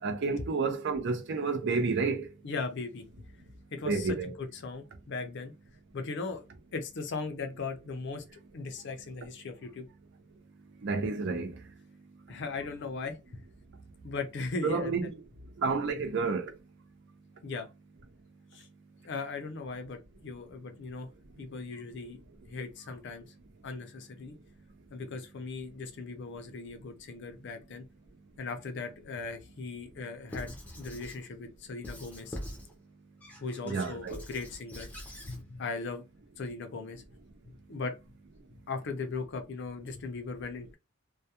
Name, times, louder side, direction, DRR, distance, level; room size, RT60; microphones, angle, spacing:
voice 1, 0.0-2.3 3.8-4.3 10.8-11.6 14.6-15.1 15.6-16.5 33.6-34.2, right 4 dB, 55° right, 0.5 m, -30 dB
voice 2, 2.4-5.5 5.9-6.4 6.7-8.2 8.5-9.9 12.3-13.4 14.0-15.0 15.9-16.0 17.4-17.7 18.5-18.7 19.0-21.1 21.4-22.2 22.5-23.3 23.6-24.3 24.9-27.8 28.4-32.4 33.4-34.9 35.3-36.0 36.4-37.0 37.5-37.9 38.7-40.8, left 4 dB, 55° left, 0.5 m, -38 dB
Squeak / Writing, 30.3-31.2 31.8-32.7 33.2-35.4, equal, 5° left, 0.5 m, -44 dB
2.3 x 2.1 x 2.8 m
head